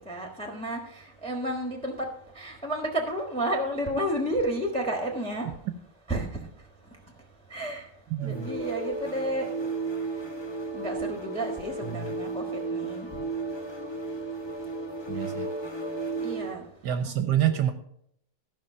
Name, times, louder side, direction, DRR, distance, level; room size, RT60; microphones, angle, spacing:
voice 1, 0.1-0.8 1.2-2.1 2.3-5.5 6.1-6.3 7.5-7.8 8.2-9.7 10.7-12.4 12.7-13.1 16.2-16.6, right 1 dB, 5° left, 1.1 m, -31 dB
voice 2, 8.1-8.5 11.8-12.1 15.1-15.5 16.8-17.7, right 10 dB, 65° right, 1.2 m, -27 dB
sound 1, 8.2-16.6, right 3 dB, 35° left, 0.4 m, -34 dB
14.0 x 5.8 x 5.5 m
omnidirectional pair, 2.3 m